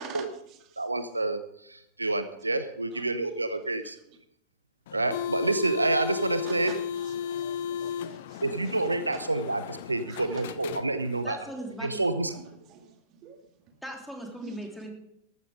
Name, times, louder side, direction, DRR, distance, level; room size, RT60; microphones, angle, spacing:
voice 1, 0.0-0.8 2.9-3.2 3.5-3.7 4.1-4.2 6.4-8.5 9.1-9.2 10.1-11.1 11.4-11.7 12.3-13.8 14.4-14.8, right 6 dB, 35° right, 5 dB, 2.2 m, -47 dB
voice 2, 0.8-4.0 4.9-6.8 8.4-11.4 11.8-12.4, right 2 dB, 80° right, 11 dB, 0.9 m, -28 dB
sound 1, 4.9-11.3, left 8 dB, 55° left, 0.7 m, -35 dB
voice 3, 11.2-12.3 13.8-14.9, right 1 dB, ahead, 1 dB, 3.3 m, -39 dB
14.5 x 12.5 x 5.1 m, 0.76 s
figure-of-eight pair, 90°, 0 cm